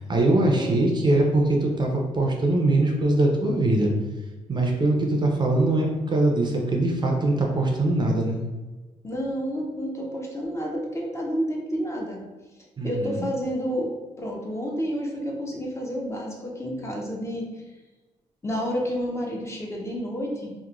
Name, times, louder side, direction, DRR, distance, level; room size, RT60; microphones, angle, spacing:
voice 1, 0.0-3.9 4.5-8.4 12.8-13.3, right 2 dB, 35° right, 1 dB, 0.4 m, -22 dB
voice 2, 9.0-12.2 12.8-13.9 14.2-17.5 18.4-20.5, equal, 20° left, -1 dB, 0.5 m, -30 dB
2.9 x 2.1 x 2.4 m, 1.2 s
cardioid pair, 95°, 13 cm